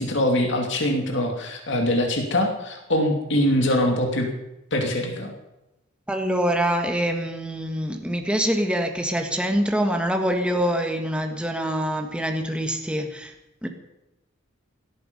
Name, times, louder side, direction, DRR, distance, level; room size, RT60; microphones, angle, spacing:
voice 1, 0.0-4.3 4.7-5.3, left 1 dB, 60° left, 2 dB, 2.7 m, -23 dB
voice 2, 6.1-13.3 13.6-13.7, equal, 5° right, 4 dB, 1.5 m, -25 dB
17.5 x 14.0 x 5.4 m, 0.95 s
head